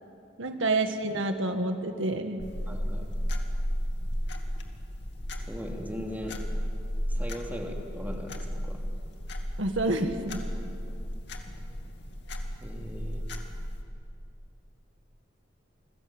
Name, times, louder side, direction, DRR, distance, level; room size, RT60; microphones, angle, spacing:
voice 1, 0.4-2.4 9.6-10.4, right 2 dB, 85° right, 6 dB, 1.8 m, -28 dB
sound 1, 2.4-13.8, equal, 60° left, 2.5 m, -34 dB
voice 2, 2.7-3.1 5.5-6.4 7.1-8.8 12.6-13.2, equal, 10° right, 1 dB, 2.8 m, -39 dB
29.0 x 20.5 x 8.9 m, 2.5 s
head